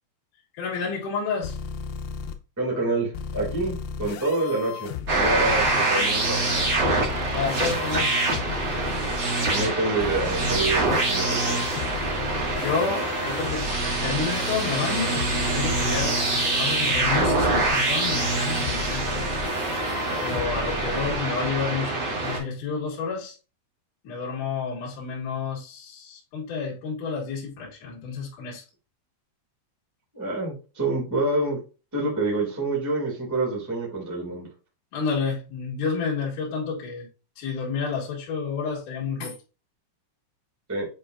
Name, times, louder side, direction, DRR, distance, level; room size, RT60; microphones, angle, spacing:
voice 1, 0.6-1.6 5.6-5.9 7.3-8.1 12.6-13.7 14.0-19.2 20.2-23.3 24.0-28.6 34.9-37.1 37.4-39.3, left 5 dB, 50° left, 2.8 m, -30 dB
sound 1, 1.4-2.3 3.1-5.7 6.6-9.2 10.0-21.2, left 6 dB, 80° left, 2.8 m, -35 dB
voice 2, 2.6-6.8 9.5-11.8 30.1-31.6 31.9-34.5 40.7-40.9, right 2 dB, 15° right, 0.6 m, -27 dB
sound 2, 5.1-22.4, right 2 dB, 55° right, 1.3 m, -25 dB
7.9 x 4.6 x 2.6 m
omnidirectional pair, 5.6 m